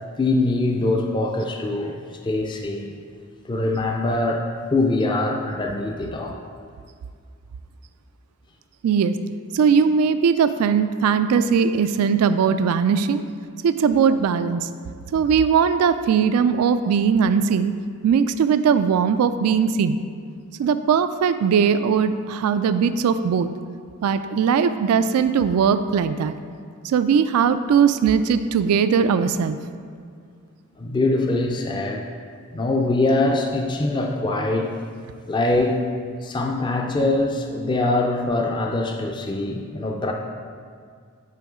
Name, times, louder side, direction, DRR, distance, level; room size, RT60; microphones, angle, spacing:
voice 1, 0.2-2.0 2.2-2.9 3.4-6.4 30.8-32.0 32.5-34.8 35.3-35.8 36.2-40.1, left 2 dB, 20° left, 2 dB, 0.4 m, -23 dB
voice 2, 8.8-9.2 9.5-13.2 13.6-14.7 15.1-17.7 18.0-20.0 20.6-23.5 24.0-26.3 26.8-29.6, right 6 dB, 85° right, 12 dB, 0.3 m, -19 dB
9.0 x 3.1 x 4.8 m, 2.1 s
head